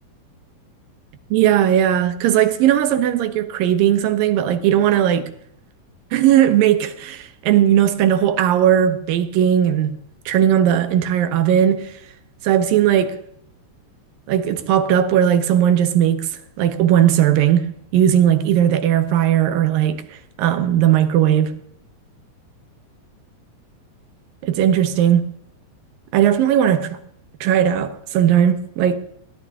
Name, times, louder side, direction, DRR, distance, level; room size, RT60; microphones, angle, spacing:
voice 1, 1.3-5.3 6.1-10.0 10.3-11.9 12.4-13.2 14.3-16.3 16.6-21.6 24.4-25.2 26.1-27.0 27.4-29.0, right 10 dB, 75° right, 2.6 m, -17 dB
22.5 x 17.0 x 3.6 m
omnidirectional pair, 4.2 m